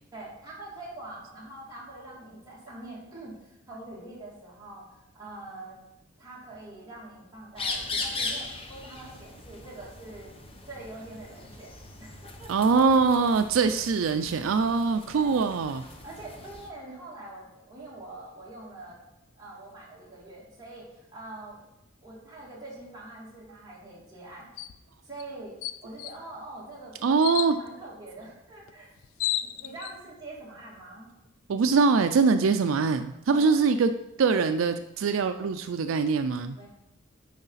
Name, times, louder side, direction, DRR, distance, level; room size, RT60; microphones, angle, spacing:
voice 1, 0.1-4.8 5.1-5.8 6.2-10.3 10.7-11.7 12.0-12.7 14.4-14.6 15.1-15.5 16.0-19.0 19.3-21.6 22.0-24.5 25.0-25.5 25.8-27.2 27.6-28.9 29.4-31.1 33.3-33.8 36.5-36.7, right 2 dB, 20° right, -7 dB, 2.7 m, -44 dB
sound 1, 7.6-16.7, left 3 dB, 30° left, 0.8 m, -39 dB
voice 2, 12.5-15.8 27.0-27.6 31.5-33.9 34.2-36.6, right 4 dB, 80° right, 9 dB, 0.4 m, -23 dB
sound 2, 24.6-24.8 25.2-25.3 25.6-26.1 27.2-27.5 28.7-28.8 29.0-29.9, left 12 dB, 80° left, 0.4 m, -31 dB
9.4 x 4.9 x 4.0 m, 0.91 s
head